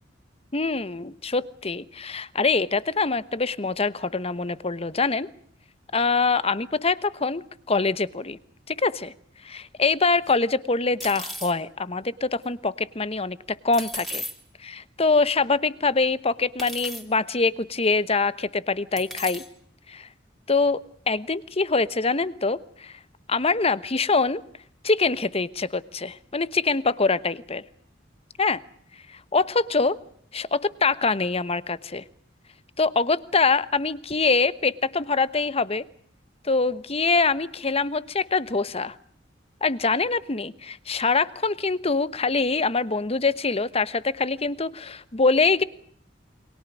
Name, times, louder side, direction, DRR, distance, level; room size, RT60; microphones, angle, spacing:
voice 1, 0.5-5.3 5.9-7.4 7.7-8.4 8.7-9.1 9.4-14.2 14.6-19.4 19.9-20.1 20.5-20.8 21.1-22.9 23.3-24.4 24.8-27.6 28.4-28.6 29.3-30.0 30.3-32.0 32.8-35.8 36.4-38.9 39.6-45.6, left 4 dB, 35° left, 16 dB, 1.1 m, -24 dB
sound 1, 10.3-10.4 11.0-11.5 13.7-14.3 15.3-15.4 16.6-17.0 17.9-18.0 19.0-19.5, equal, ahead, 3.1 m, -35 dB
29.0 x 23.5 x 6.3 m, 0.63 s
head